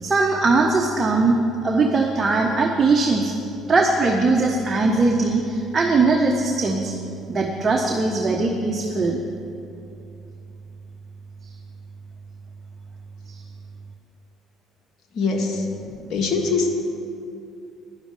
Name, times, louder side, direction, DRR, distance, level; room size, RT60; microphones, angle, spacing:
voice 1, 0.0-3.3 3.7-7.0 7.3-9.2 13.3-13.4, right 3 dB, 30° right, 1 dB, 1.1 m, -20 dB
voice 2, 15.2-15.6 16.1-16.7, left 4 dB, 60° left, 2 dB, 1.8 m, -22 dB
10.5 x 7.0 x 9.2 m, 2.7 s
supercardioid pair, 70°, 0 cm